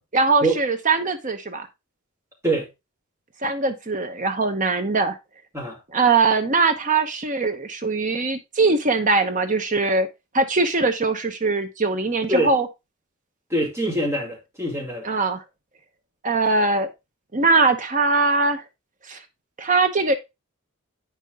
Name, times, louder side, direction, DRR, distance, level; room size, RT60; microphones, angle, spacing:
voice 1, 0.1-1.7 3.4-5.2 5.9-10.1 10.3-12.7 15.0-15.4 16.2-16.9 17.3-18.6 19.1-19.2 19.6-20.2, right 3 dB, 35° right, 1.0 m, -21 dB
voice 2, 13.5-15.1, right 1 dB, 15° right, 2.2 m, -24 dB
9.0 x 5.7 x 3.6 m
head